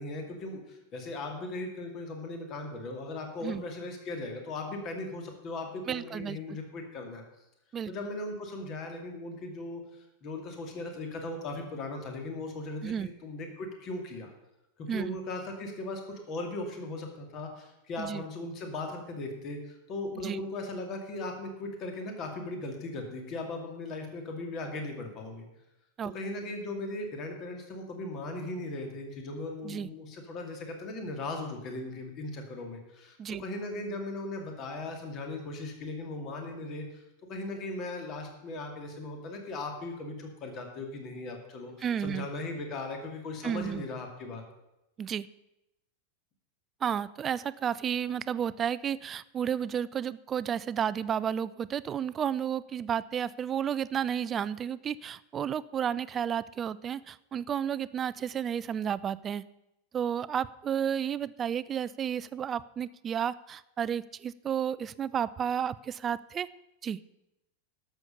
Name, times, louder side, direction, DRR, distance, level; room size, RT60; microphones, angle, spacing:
voice 1, 0.0-7.2 7.9-14.3 14.8-25.4 26.1-37.0 37.3-44.4, left 2 dB, 35° left, 4 dB, 2.3 m, -38 dB
voice 2, 5.9-6.4 7.7-7.9 12.8-13.1 14.9-15.2 18.0-18.2 20.2-20.4 26.0-26.1 29.6-29.9 33.2-33.4 41.8-42.3 43.4-43.8 45.0-45.3 46.8-59.4 59.9-66.5 66.8-67.0, right 8 dB, 25° right, 17 dB, 0.4 m, -32 dB
12.0 x 7.2 x 6.6 m, 0.90 s
figure-of-eight pair, 90°, 0 cm